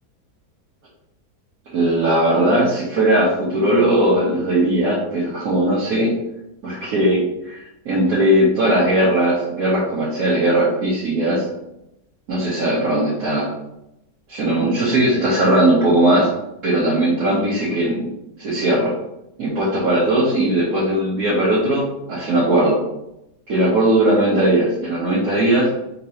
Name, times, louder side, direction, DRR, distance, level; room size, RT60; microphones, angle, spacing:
voice 1, 1.7-6.1 6.6-11.5 12.3-13.5 14.3-16.3 16.6-18.1 18.4-18.9 19.4-22.8 23.5-25.7, right 1 dB, 55° right, -9 dB, 1.5 m, -18 dB
3.7 x 2.9 x 4.3 m, 0.85 s
omnidirectional pair, 1.9 m